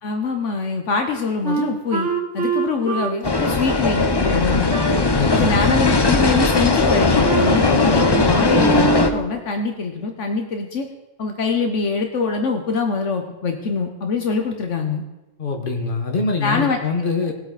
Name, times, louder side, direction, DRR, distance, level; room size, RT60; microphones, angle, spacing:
voice 1, 0.0-2.1 2.3-4.7 5.3-10.9 11.2-15.0 16.4-16.8 17.2-17.3, left 4 dB, 75° left, 4 dB, 1.3 m, -23 dB
Wind instrument woodwind instrument, 1.4-4.9 5.3-5.6 5.8-6.5 6.8-7.6 7.9-8.2 8.5-9.2, right 5 dB, 65° right, 1.9 m, -25 dB
sound 1, 3.2-9.1, left 3 dB, 25° left, 0.6 m, -18 dB
voice 2, 4.9-5.8 15.4-17.3, left 4 dB, 45° left, 3 dB, 1.7 m, -24 dB
20.0 x 8.2 x 4.1 m, 1.1 s
omnidirectional pair, 1.3 m